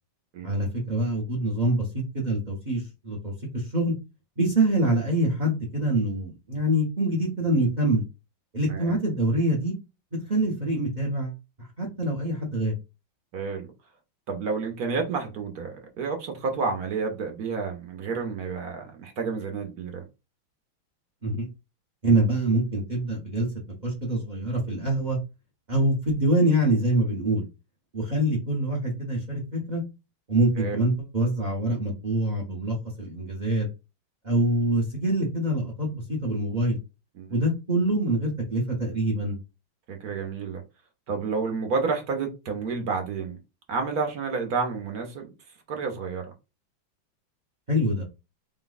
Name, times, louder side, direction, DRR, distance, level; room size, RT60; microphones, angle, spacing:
voice 1, 0.4-3.9 4.4-8.0 8.5-9.7 10.3-12.7 21.2-21.5 22.0-23.5 23.8-25.2 25.7-27.4 27.9-29.8 30.3-33.7 34.2-36.8 37.3-39.4 47.7-48.0, right 1 dB, 35° right, 0.7 m, -25 dB
voice 2, 13.3-13.7 14.3-20.0 30.6-30.8 37.2-37.4 39.9-40.6 41.1-43.4 43.7-45.3 45.7-46.3, right 4 dB, 60° right, 1.1 m, -30 dB
4.1 x 2.3 x 3.9 m
omnidirectional pair, 2.2 m